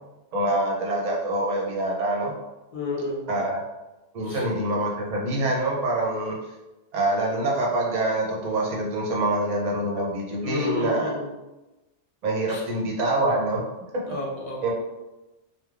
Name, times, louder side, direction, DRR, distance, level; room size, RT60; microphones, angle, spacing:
voice 1, 0.3-2.3 3.3-3.6 4.1-6.4 6.9-11.1 12.2-13.6 14.6-14.7, right 2 dB, 45° right, -3 dB, 0.6 m, -25 dB
voice 2, 2.7-3.3 4.2-4.4 10.4-11.3 12.5-12.6 14.1-14.7, left 3 dB, 50° left, -4 dB, 0.4 m, -31 dB
3.1 x 2.1 x 2.4 m, 1.0 s
omnidirectional pair, 1.3 m